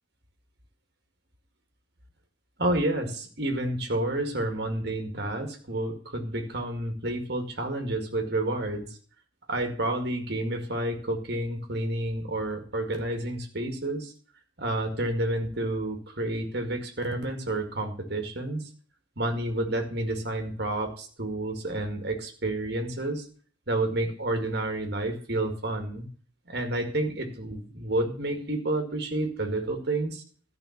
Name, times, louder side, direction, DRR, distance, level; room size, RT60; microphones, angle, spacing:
voice 1, 2.6-9.0 9.5-14.1 14.6-18.6 19.2-23.2 23.7-26.1 26.5-30.2, right 1 dB, 50° right, 4 dB, 2.1 m, -30 dB
12.5 x 5.4 x 7.2 m, 0.43 s
head